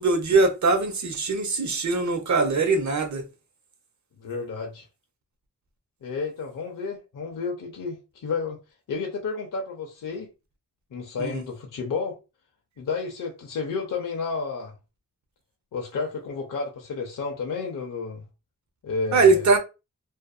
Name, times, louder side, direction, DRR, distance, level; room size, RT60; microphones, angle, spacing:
voice 1, 0.0-3.2 11.2-11.4 19.1-19.6, right 3 dB, 55° right, 0.8 m, -21 dB
voice 2, 4.2-4.9 6.0-8.6 8.9-10.3 10.9-12.2 12.8-14.7 15.7-18.2 18.8-19.5, left 4 dB, 65° left, 0.6 m, -31 dB
2.6 x 2.4 x 2.2 m
cardioid pair, 45°, 34 cm